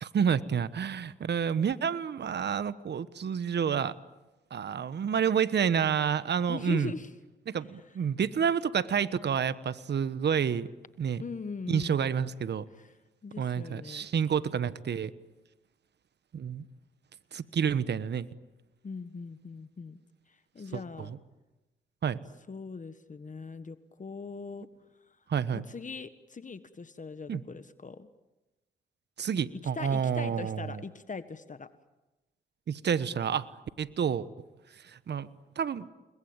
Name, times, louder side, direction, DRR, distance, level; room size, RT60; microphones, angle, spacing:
voice 1, 0.0-3.9 4.5-6.9 7.5-10.7 11.0-11.2 11.7-12.7 13.4-15.1 16.3-16.6 17.3-18.3 20.7-21.2 22.0-22.2 25.3-25.6 27.3-27.4 29.2-30.8 32.7-33.5 33.8-34.3 34.8-35.3 35.6-35.9, right 7 dB, 60° right, 15 dB, 1.2 m, -29 dB
voice 2, 6.5-7.1 11.2-12.1 12.8-12.9 13.2-14.1 18.8-20.0 20.3-21.1 22.5-24.7 25.5-28.1 29.7-31.7, left 4 dB, 40° left, 11 dB, 1.5 m, -40 dB
30.0 x 21.5 x 9.0 m, 1.1 s
supercardioid pair, 55°, 20 cm